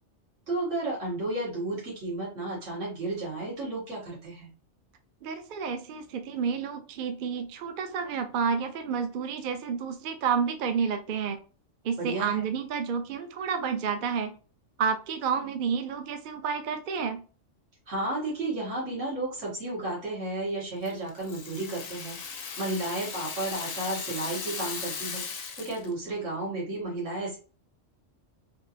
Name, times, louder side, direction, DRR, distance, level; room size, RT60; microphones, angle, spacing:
voice 1, 0.5-4.5 12.0-12.5 17.9-25.2 25.6-27.4, right 2 dB, 80° right, -5 dB, 1.9 m, -33 dB
voice 2, 5.2-11.4 11.8-14.4 14.8-17.2, right 6 dB, 55° right, 7 dB, 0.6 m, -30 dB
Rattle (instrument), 20.8-25.9, left 5 dB, 50° left, 0.5 m, -37 dB
3.6 x 2.9 x 2.7 m, 0.37 s
omnidirectional pair, 1.3 m